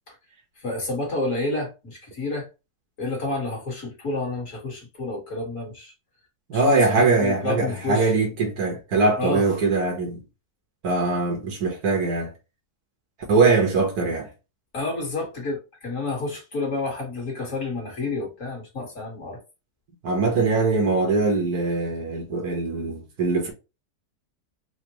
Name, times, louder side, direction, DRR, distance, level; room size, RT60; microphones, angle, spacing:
voice 1, 0.6-2.5 3.0-5.9 6.5-8.1 9.2-9.6 14.7-19.4, left 2 dB, 55° left, 2.1 m, -29 dB
voice 2, 6.5-10.2 10.8-12.3 13.3-14.3 20.0-23.5, right 3 dB, 80° right, 1.8 m, -22 dB
5.0 x 2.2 x 3.0 m
omnidirectional pair, 1.6 m